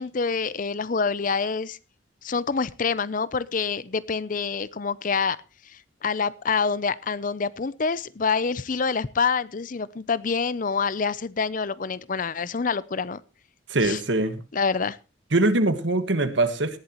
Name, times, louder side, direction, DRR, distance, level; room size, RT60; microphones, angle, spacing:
voice 1, 0.0-1.8 2.2-5.4 6.0-13.2 13.8-14.0 14.5-15.0, left 5 dB, 40° left, 0.5 m, -26 dB
voice 2, 13.7-14.4 15.3-16.8, right 2 dB, 65° right, 1.5 m, -22 dB
18.5 x 11.5 x 3.0 m
head